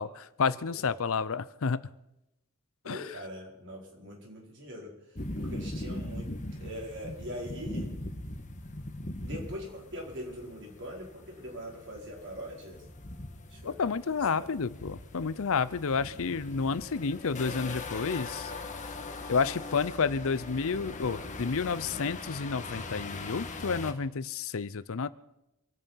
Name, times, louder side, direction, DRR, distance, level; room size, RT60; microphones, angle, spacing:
voice 1, 0.0-1.8 2.9-3.0 13.6-18.5 19.3-25.1, left 5 dB, 65° left, 17 dB, 0.6 m, -30 dB
voice 2, 0.7-1.0 2.8-4.9 5.4-6.3 6.6-7.9 9.2-12.9 13.5-13.8 14.1-14.5, equal, 60° right, -1 dB, 4.6 m, -42 dB
sound 1, 5.1-23.9, left 2 dB, 35° left, 1.4 m, -40 dB
26.0 x 9.0 x 5.7 m, 0.89 s
head